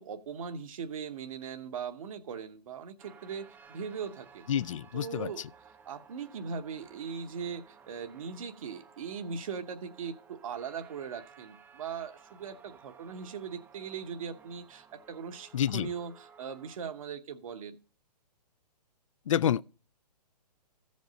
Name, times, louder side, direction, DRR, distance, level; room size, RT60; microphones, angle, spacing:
voice 1, 0.0-4.5 4.9-5.5 5.8-17.8, right 6 dB, 55° right, 0.9 m, -40 dB
sound 1, 3.0-16.8, right 6 dB, 10° right, 0.6 m, -57 dB
voice 2, 4.5-5.5 15.5-15.9 19.3-19.6, left 9 dB, 50° left, 0.4 m, -28 dB
15.0 x 5.3 x 3.9 m
figure-of-eight pair, 125°, 21 cm